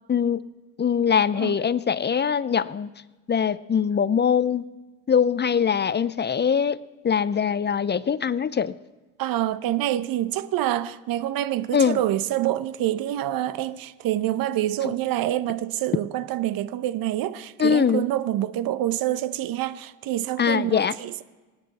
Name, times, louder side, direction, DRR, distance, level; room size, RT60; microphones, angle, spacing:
voice 1, 0.1-0.4 0.8-2.9 3.3-4.6 5.1-6.8 7.0-8.7 11.7-12.0 14.8-14.9 17.6-18.1 20.4-20.9, left 7 dB, 25° left, 0.6 m, -22 dB
voice 2, 9.2-21.2, right 13 dB, 60° right, 1.0 m, -26 dB
26.5 x 9.7 x 4.2 m
supercardioid pair, 70°, 39 cm